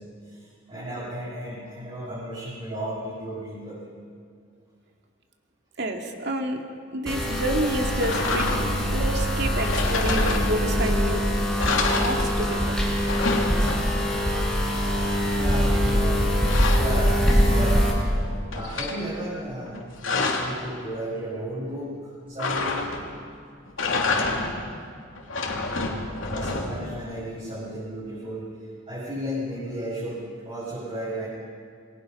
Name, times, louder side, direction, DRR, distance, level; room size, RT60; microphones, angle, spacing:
voice 1, 0.0-3.8 15.4-18.1 18.5-22.9 26.2-31.3, right 1 dB, 30° right, -9 dB, 6.7 m, -34 dB
voice 2, 5.8-6.6 6.9-8.6 8.9-11.2 12.0-12.8, right 1 dB, 55° right, 3 dB, 2.4 m, -29 dB
sound 1, 7.1-17.9, equal, 5° left, 5.1 m, -23 dB
sound 2, 8.0-8.9 9.6-10.9 11.2-11.3 11.6-12.7 12.9-14.2 15.9-17.7 18.1-19.0 19.7-20.6 22.4-23.2 23.7-24.7 25.1-26.9, left 3 dB, 85° left, 3.1 m, -28 dB
27.5 x 22.0 x 5.5 m, 2.2 s
head